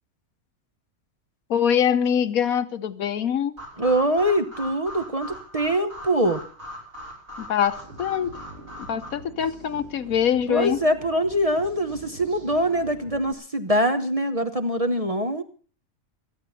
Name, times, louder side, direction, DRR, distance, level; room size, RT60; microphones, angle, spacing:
voice 1, 1.5-3.5 7.4-8.3 8.9-10.8, left 8 dB, 70° left, 12 dB, 1.3 m, -23 dB
sound 1, 3.6-9.1, equal, 65° right, 6.4 m, -40 dB
voice 2, 3.8-6.4 10.5-15.4, equal, 30° right, 7 dB, 0.9 m, -23 dB
sound 2, 7.8-13.3, right 1 dB, 45° right, 2.0 m, -45 dB
26.0 x 9.3 x 4.1 m, 0.39 s
omnidirectional pair, 1.6 m